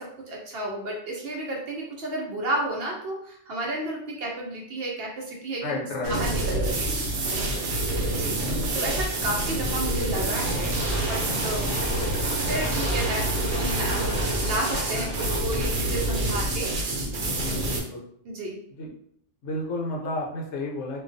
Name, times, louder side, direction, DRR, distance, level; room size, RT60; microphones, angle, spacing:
voice 1, 0.0-6.9 8.0-8.4 8.7-10.8 11.1-11.7 12.2-16.7 18.2-18.6, right 1 dB, 65° right, -2 dB, 0.7 m, -32 dB
voice 2, 5.6-6.1 7.5-7.8 17.3-18.0 18.8-18.9 19.4-21.0, left 1 dB, 75° left, -2 dB, 0.9 m, -32 dB
sound 1, 6.0-17.8, right 1 dB, 85° right, 1.0 m, -27 dB
sound 2, 10.1-15.4, left 1 dB, 15° left, 0.6 m, -36 dB
2.3 x 2.2 x 2.5 m, 0.69 s
omnidirectional pair, 1.3 m